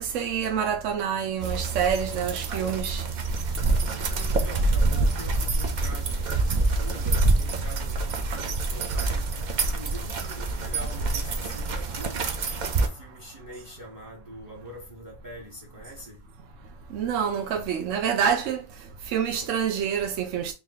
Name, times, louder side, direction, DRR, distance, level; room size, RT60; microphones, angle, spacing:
voice 1, 0.0-3.1 16.9-20.5, right 7 dB, 80° right, 1.0 m, -27 dB
sound 1, 1.4-12.9, right 3 dB, 55° right, 0.5 m, -26 dB
voice 2, 4.1-9.3 9.7-12.2 12.7-16.2, equal, 20° right, 0.8 m, -44 dB
2.9 x 2.9 x 3.7 m
omnidirectional pair, 1.3 m